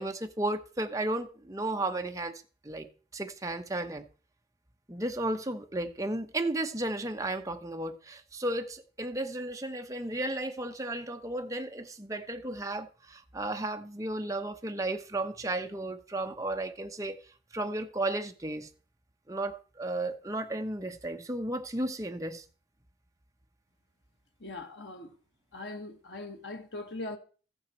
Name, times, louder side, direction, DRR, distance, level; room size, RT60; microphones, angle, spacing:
voice 1, 0.0-2.9 3.1-4.1 4.9-17.2 17.5-18.7 19.3-22.4, right 2 dB, 20° right, 0.9 m, -34 dB
voice 2, 24.4-25.1 25.5-27.2, left 2 dB, 75° left, 1.4 m, -40 dB
14.5 x 8.9 x 4.4 m
head